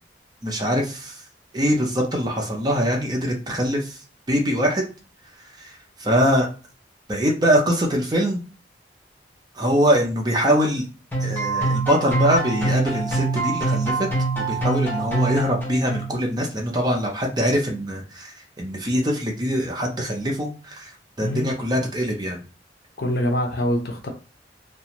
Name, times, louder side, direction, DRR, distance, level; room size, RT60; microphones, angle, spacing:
voice 1, 0.4-1.2 1.5-4.0 4.3-4.9 5.6-5.7 6.0-6.5 7.1-8.4 9.5-10.9 11.2-14.1 14.4-20.9 21.2-22.4, equal, 25° right, 0.6 m, -23 dB
sound 1, 11.1-16.3, right 2 dB, 10° left, 0.8 m, -25 dB
voice 2, 21.2-21.5 23.0-24.1, left 1 dB, 60° left, 0.6 m, -24 dB
2.5 x 2.2 x 2.9 m
head